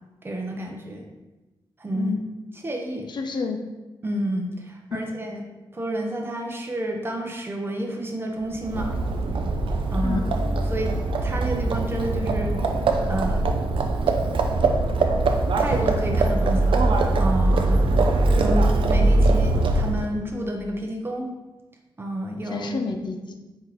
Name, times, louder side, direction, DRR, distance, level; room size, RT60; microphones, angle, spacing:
voice 1, 0.2-1.1 1.8-2.1 2.6-3.1 4.0-5.4 5.7-9.0 9.9-10.2 10.7-10.9 11.2-12.6 13.0-13.6 15.6-17.9 18.4-21.3 22.0-22.7, right 1 dB, 25° right, 2 dB, 0.6 m, -30 dB
voice 2, 3.1-3.6 4.9-5.0 10.0-10.2 22.5-23.3, left 5 dB, 60° left, 4 dB, 0.4 m, -29 dB
Livestock farm animals working animals, 8.5-20.1, right 2 dB, 75° right, 0.4 m, -22 dB
4.3 x 3.8 x 3.1 m, 1.1 s
wide cardioid pair, 120°, 9 cm